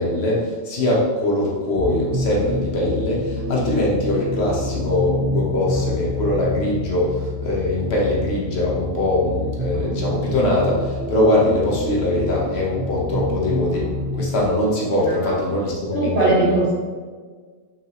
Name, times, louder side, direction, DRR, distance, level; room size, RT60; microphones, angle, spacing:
voice 1, 0.0-13.9 14.1-16.5, left 1 dB, 80° left, -4 dB, 1.4 m, -22 dB
sound 1, 1.8-14.5, left 1 dB, 35° right, 1.0 m, -28 dB
voice 2, 14.9-15.4 15.9-16.7, right 2 dB, 55° right, -4 dB, 1.2 m, -21 dB
6.8 x 6.3 x 3.0 m, 1.5 s
omnidirectional pair, 1.1 m